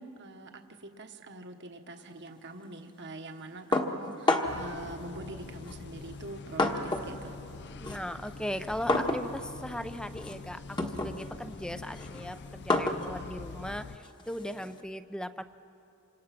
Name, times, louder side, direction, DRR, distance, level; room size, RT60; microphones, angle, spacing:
voice 1, 0.0-7.4, right 2 dB, 55° right, 5 dB, 1.3 m, -44 dB
sound 1, 3.7-4.7 5.6-7.2 7.5-14.8, left 2 dB, 20° left, 1.4 m, -32 dB
sound 2, 4.4-14.0, left 3 dB, 55° left, 0.6 m, -45 dB
voice 2, 7.8-15.4, left 1 dB, 5° left, 11 dB, 0.6 m, -38 dB
27.5 x 26.0 x 6.0 m, 2.8 s
head